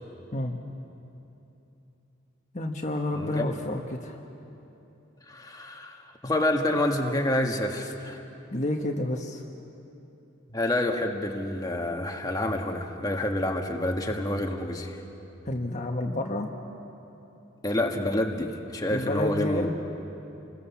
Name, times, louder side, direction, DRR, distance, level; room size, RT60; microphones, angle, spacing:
voice 1, 2.5-4.2 8.5-9.4 15.4-16.5 18.9-19.7, left 1 dB, 35° left, 2 dB, 1.4 m, -30 dB
voice 2, 3.1-3.6 5.3-8.2 10.5-15.0 17.6-19.7, left 1 dB, 20° left, 2 dB, 1.6 m, -28 dB
29.0 x 22.0 x 7.2 m, 3.0 s
head